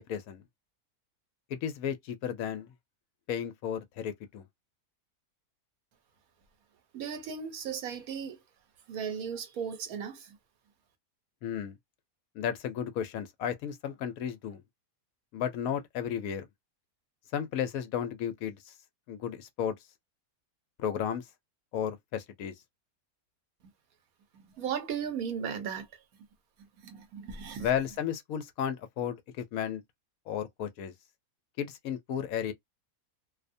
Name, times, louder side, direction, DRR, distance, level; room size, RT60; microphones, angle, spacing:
voice 1, 0.1-0.4 1.5-2.7 3.3-4.4 11.4-11.7 12.4-14.6 15.3-16.5 17.3-18.7 19.1-19.8 20.8-21.3 21.7-22.5 27.6-29.8 30.3-30.9 31.6-32.5, left 9 dB, 75° left, 1.0 m, -33 dB
voice 2, 6.9-8.4 8.9-10.4 24.3-25.9 26.8-27.7, right 7 dB, 75° right, 1.2 m, -36 dB
2.6 x 2.1 x 2.5 m
omnidirectional pair, 1.6 m